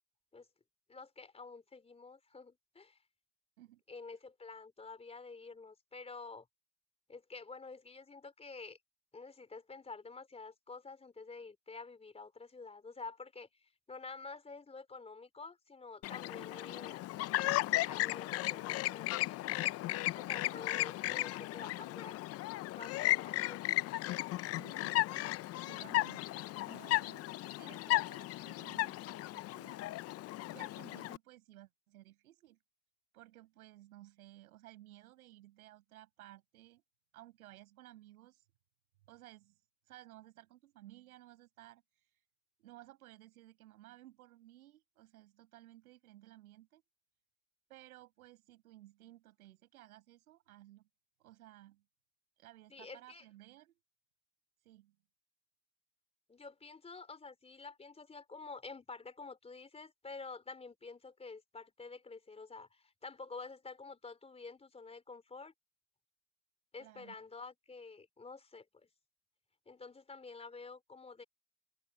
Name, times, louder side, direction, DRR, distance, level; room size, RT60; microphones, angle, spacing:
voice 1, 0.9-3.0 3.9-6.5 7.1-8.8 9.1-17.0 17.7-19.6 20.1-22.2 22.7-23.6 52.7-53.2 56.3-65.5 66.7-68.9 69.7-71.2, left 4 dB, 15° left, 4.0 m, -49 dB
Chirp tweet, 16.0-31.2, left 17 dB, 35° left, 0.7 m, -35 dB
voice 2, 24.5-26.3 26.6-27.3 27.6-29.8 30.5-32.6 33.1-36.8 37.1-38.4 39.1-39.6 39.9-42.2 42.6-46.8 47.7-50.9 51.2-51.8 52.4-53.8 54.6-55.0 66.8-67.1, right 15 dB, 75° right, 6.2 m, -57 dB
open air
hypercardioid pair, 110°, 43 cm